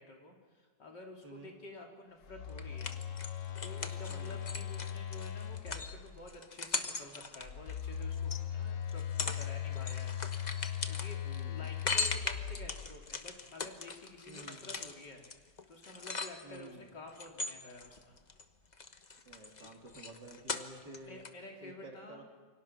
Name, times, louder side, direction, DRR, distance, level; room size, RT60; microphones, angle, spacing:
voice 1, 0.0-3.0 3.6-10.2 10.9-11.2 11.5-15.2 15.7-18.2 19.6-19.7 20.9-22.2, left 2 dB, 70° left, 0 dB, 3.9 m, -50 dB
Telephone, 2.2-6.3 7.4-13.1, left 9 dB, 55° left, 1.0 m, -39 dB
sound 1, 2.6-8.4 8.9-9.5 9.7-16.7 17.1-18.4 18.7-21.0 21.2-21.3, left 4 dB, 30° left, 1.0 m, -39 dB
voice 2, 4.1-4.5 11.2-11.7 14.3-14.7 16.4-16.9 19.3-21.2 21.6-22.2, right 2 dB, 70° right, 1 dB, 4.0 m, -51 dB
28.0 x 24.0 x 5.9 m, 1.4 s
omnidirectional pair, 1.9 m